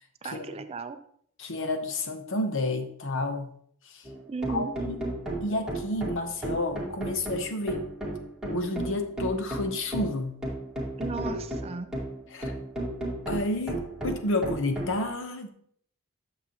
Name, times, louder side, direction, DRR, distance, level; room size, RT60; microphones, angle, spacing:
voice 1, 0.2-1.0 4.3-4.7 11.0-11.9, right 4 dB, 25° right, 9 dB, 0.4 m, -34 dB
voice 2, 1.4-3.5 3.9-4.0 4.5-5.1 5.4-7.8 8.5-10.4 12.3-12.6 13.3-15.5, left 2 dB, 60° left, 7 dB, 0.9 m, -30 dB
sound 1, 4.1-15.0, right 1 dB, 5° right, 1.9 m, -34 dB
8.5 x 6.7 x 2.9 m, 0.63 s
head